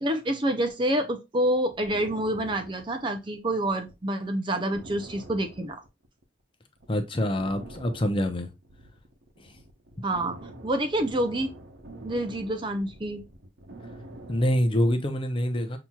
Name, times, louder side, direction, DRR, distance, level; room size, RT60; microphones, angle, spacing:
voice 1, 0.0-5.8 10.0-11.6 12.0-13.2, right 1 dB, 25° right, 0.5 m, -27 dB
sound 1, 1.5-4.0 4.3-4.4 4.7-6.4 6.8-6.9 7.4-14.6, right 1 dB, 85° right, 0.9 m, -46 dB
voice 2, 6.9-8.5 14.3-15.8, equal, 30° left, 0.6 m, -25 dB
5.8 x 2.9 x 2.3 m
head